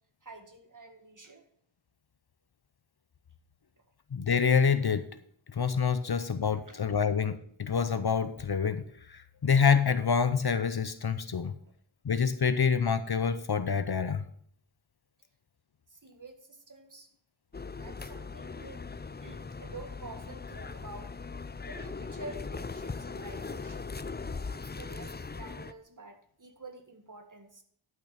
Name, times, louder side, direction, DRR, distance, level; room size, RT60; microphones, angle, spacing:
voice 1, 0.2-1.4 6.5-6.8 11.5-11.7 15.9-17.1 17.7-18.9 19.2-21.1 21.6-23.9 24.5-27.6, right 2 dB, 40° right, 5 dB, 1.9 m, -48 dB
voice 2, 4.1-5.1 5.5-11.5 12.0-14.2, left 6 dB, 50° left, 12 dB, 0.8 m, -27 dB
sound 1, 17.5-25.7, left 4 dB, 20° left, 0.5 m, -40 dB
11.0 x 6.0 x 5.9 m, 0.63 s
wide cardioid pair, 60°, 49 cm